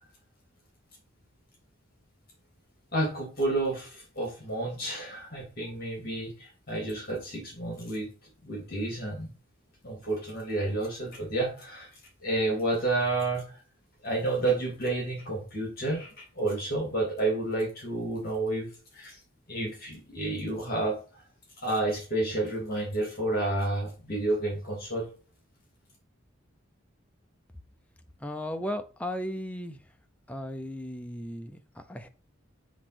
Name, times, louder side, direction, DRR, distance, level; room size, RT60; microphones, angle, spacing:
voice 1, 2.9-8.1 8.4-9.3 9.8-11.9 12.2-13.6 14.0-18.7 18.9-19.2 19.5-21.2 21.6-25.1, right 2 dB, 45° left, 2.8 m, -30 dB
voice 2, 28.2-29.8 30.3-32.1, equal, 5° left, 0.6 m, -36 dB
8.1 x 3.2 x 6.1 m
head